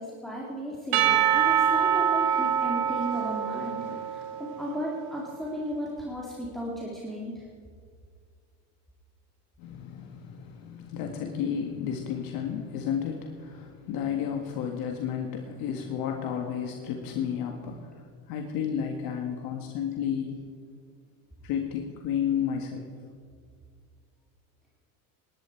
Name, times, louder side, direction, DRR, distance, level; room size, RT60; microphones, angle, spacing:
voice 1, 0.0-3.8 4.1-7.3, equal, ahead, -5 dB, 2.4 m, -35 dB
Percussion / Church bell, 0.9-5.1, right 9 dB, 75° right, 1.5 m, -25 dB
voice 2, 9.6-20.4 21.4-22.9, left 8 dB, 55° left, 3 dB, 1.8 m, -32 dB
19.5 x 11.5 x 4.6 m, 2.2 s
supercardioid pair, 130°, 42 cm